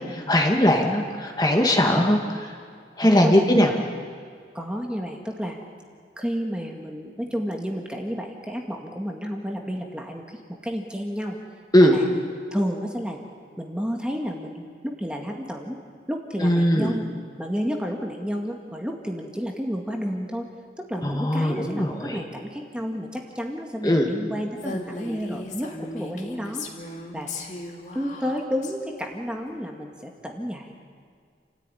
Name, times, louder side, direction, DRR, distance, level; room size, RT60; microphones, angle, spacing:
voice 1, 0.0-2.5 3.0-3.7 11.7-12.0 16.4-16.9 21.0-22.2 23.8-24.1, equal, 20° left, 2 dB, 2.0 m, -20 dB
voice 2, 3.0-3.4 4.5-5.6 6.2-11.4 11.8-12.1 12.5-13.2 13.6-15.8 16.1-17.1 17.4-20.5 20.8-26.7 27.1-27.3 27.9-30.7, equal, 5° right, 1 dB, 2.0 m, -31 dB
Female speech woman speaking, 24.6-28.7, left 2 dB, 40° left, 2.4 m, -37 dB
29.5 x 14.5 x 10.0 m, 2.1 s
head